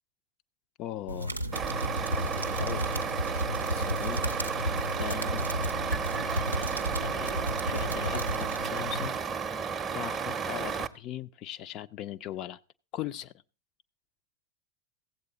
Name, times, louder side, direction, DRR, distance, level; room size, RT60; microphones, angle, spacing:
voice 1, 0.8-1.3 2.1-3.0 3.7-4.3 5.0-5.4 6.2-6.7 7.0-9.1 9.9-12.6 12.9-13.3, left 12 dB, 35° left, 12 dB, 0.5 m, -39 dB
sound 1, 1.1-9.1, equal, 85° right, 0.5 m, -33 dB
Truck, 1.5-10.9, right 6 dB, 20° right, 0.6 m, -32 dB
15.5 x 8.1 x 3.9 m, 0.33 s
figure-of-eight pair, 90°, 0 cm